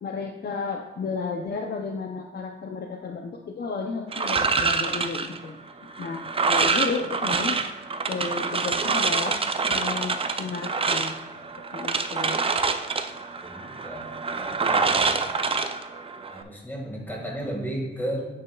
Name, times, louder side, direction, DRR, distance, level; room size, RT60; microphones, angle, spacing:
voice 1, 0.0-7.6 8.1-11.2 11.7-12.4, left 4 dB, 55° left, 3 dB, 0.5 m, -33 dB
sound 1, 4.1-16.4, right 4 dB, 30° right, 0.4 m, -26 dB
voice 2, 13.4-15.4 16.3-18.3, right 1 dB, 10° left, -2 dB, 1.8 m, -34 dB
8.7 x 6.9 x 2.3 m, 1.3 s
wide cardioid pair, 150°, 20 cm